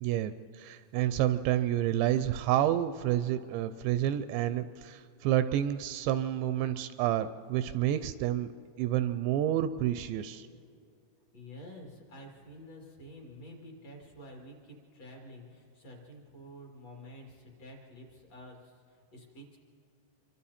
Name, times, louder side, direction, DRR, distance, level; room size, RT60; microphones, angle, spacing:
voice 1, 0.0-8.5 8.8-10.5, right 12 dB, 80° right, 12 dB, 2.7 m, -29 dB
voice 2, 11.3-19.6, equal, 40° left, -1 dB, 3.2 m, -49 dB
26.5 x 24.5 x 4.3 m, 2.5 s
omnidirectional pair, 5.3 m